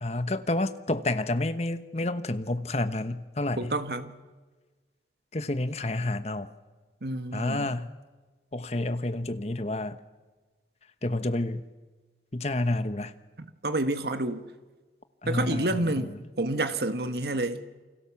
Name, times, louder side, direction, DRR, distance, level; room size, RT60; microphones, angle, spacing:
voice 1, 0.0-3.8 5.3-6.5 7.3-7.9 8.5-10.0 11.0-11.7 12.3-13.1 15.2-16.2, left 2 dB, 35° left, 1.2 m, -29 dB
voice 2, 3.6-4.1 7.0-7.7 13.6-14.4 15.3-17.6, right 2 dB, 65° right, 1.5 m, -29 dB
28.5 x 25.0 x 7.3 m
head